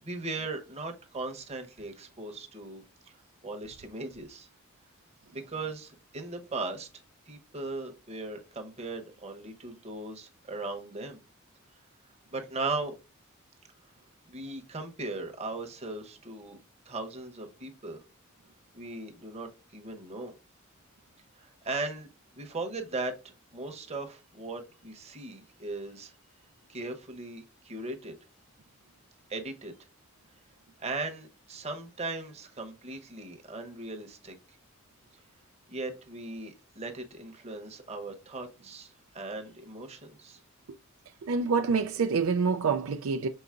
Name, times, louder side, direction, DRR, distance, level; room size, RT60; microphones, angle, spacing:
voice 1, 0.0-3.2 3.4-4.5 5.3-6.9 7.3-11.2 12.3-13.0 14.3-16.6 16.9-18.0 18.7-20.3 21.4-22.1 22.4-26.1 26.7-28.2 29.3-29.7 30.8-34.3 35.7-40.4, right 3 dB, 30° right, 0.9 m, -38 dB
voice 2, 41.2-43.3, right 5 dB, 70° right, 0.4 m, -26 dB
5.6 x 3.9 x 2.4 m
head